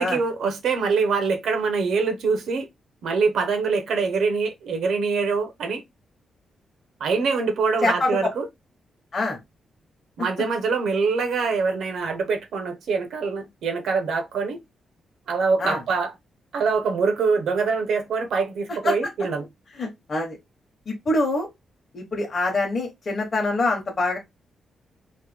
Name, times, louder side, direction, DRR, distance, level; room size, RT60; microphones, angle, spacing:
voice 1, 0.0-2.7 3.0-5.8 7.0-8.5 10.2-14.6 15.3-16.1 16.5-19.5, right 4 dB, 75° right, 0.7 m, -24 dB
voice 2, 19.8-20.4 20.9-21.5 21.9-24.2, left 2 dB, 35° left, 0.8 m, -24 dB
3.1 x 2.1 x 3.3 m
wide cardioid pair, 165°, 0 cm